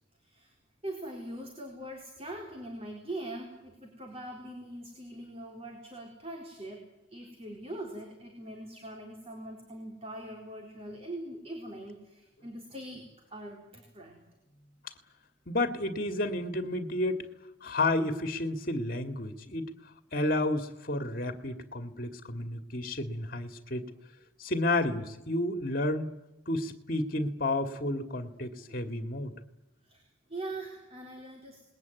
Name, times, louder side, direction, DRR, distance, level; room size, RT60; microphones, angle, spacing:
voice 1, 0.2-0.5 0.8-14.2 28.6-28.8 29.8-31.6, right 1 dB, 30° right, 1 dB, 4.0 m, -42 dB
voice 2, 15.5-17.3 17.6-19.7 20.1-23.9 24.4-26.1 26.5-29.3, left 2 dB, 45° left, 8 dB, 2.2 m, -31 dB
28.0 x 20.5 x 9.5 m, 0.99 s
head